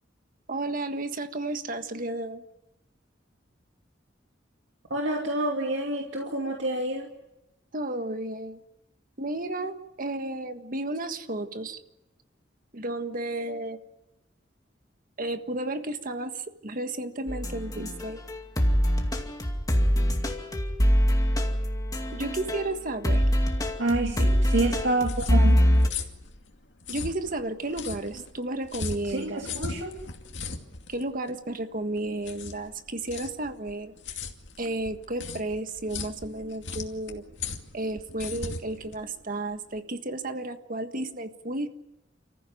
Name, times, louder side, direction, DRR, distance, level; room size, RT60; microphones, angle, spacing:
voice 1, 0.5-2.4 7.7-8.6 9.2-11.8 12.7-13.8 15.2-18.2 22.1-23.2 26.9-29.4 30.9-33.9 34.6-37.2 37.7-41.7, right 2 dB, 50° right, 8 dB, 1.6 m, -32 dB
voice 2, 4.9-7.1 23.8-25.6 29.1-29.9, right 2 dB, 80° right, 1 dB, 2.5 m, -28 dB
sound 1, 17.3-22.8 23.0-25.9, equal, 20° left, 2.3 m, -24 dB
sound 2, 24.7-39.8, left 4 dB, 70° left, 2.5 m, -39 dB
30.0 x 15.0 x 9.3 m, 0.93 s
head